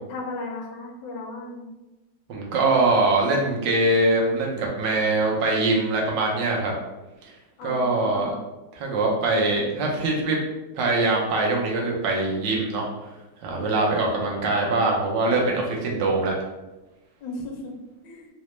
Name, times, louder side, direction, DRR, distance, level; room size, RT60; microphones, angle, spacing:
voice 1, 0.0-1.7 7.6-8.4 17.2-17.8 18.0-18.3, left 2 dB, 80° left, 1 dB, 1.3 m, -35 dB
voice 2, 2.3-6.7 7.2-7.3 7.6-8.4 8.7-10.4 10.7-12.9 13.4-16.3, right 2 dB, 75° right, -1 dB, 1.4 m, -23 dB
3.9 x 2.1 x 3.0 m, 1.1 s
omnidirectional pair, 2.0 m